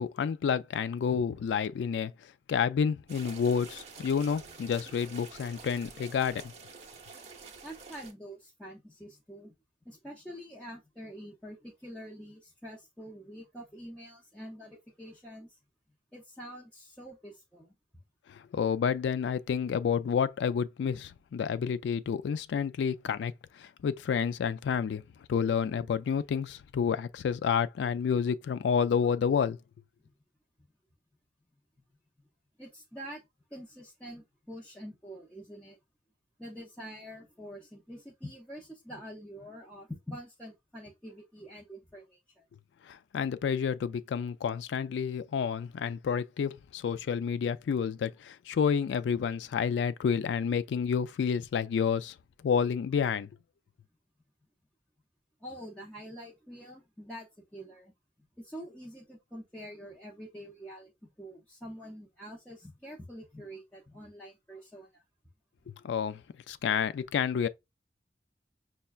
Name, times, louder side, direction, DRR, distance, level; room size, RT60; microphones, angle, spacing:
voice 1, 0.0-2.1 2.5-6.5 18.3-25.0 25.3-29.6 42.9-52.1 52.4-53.3 65.7-66.2 66.5-67.5, left 7 dB, 80° left, 0.3 m, -29 dB
sound 1, 3.1-8.1, right 4 dB, 40° right, 0.7 m, -48 dB
voice 2, 7.6-9.5 9.8-15.6 16.1-17.7 30.0-30.2 32.2-32.3 32.6-33.2 33.5-35.8 36.4-42.4 55.4-57.9 58.4-65.0, equal, 5° left, 0.6 m, -46 dB
5.4 x 2.2 x 2.3 m
head